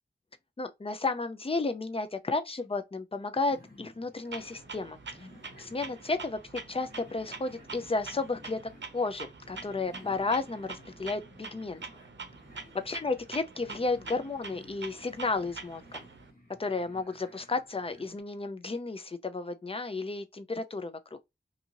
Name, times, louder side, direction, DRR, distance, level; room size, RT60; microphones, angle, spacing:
voice 1, 0.6-5.0 5.6-8.6 8.9-11.8 12.9-16.0 16.6-21.2, left 3 dB, 30° left, 0.4 m, -33 dB
sound 1, 3.5-18.2, left 1 dB, 50° left, 1.2 m, -55 dB
Clock, 4.3-16.3, right 4 dB, 75° right, 0.6 m, -45 dB
2.7 x 2.5 x 2.8 m
wide cardioid pair, 50°, 19 cm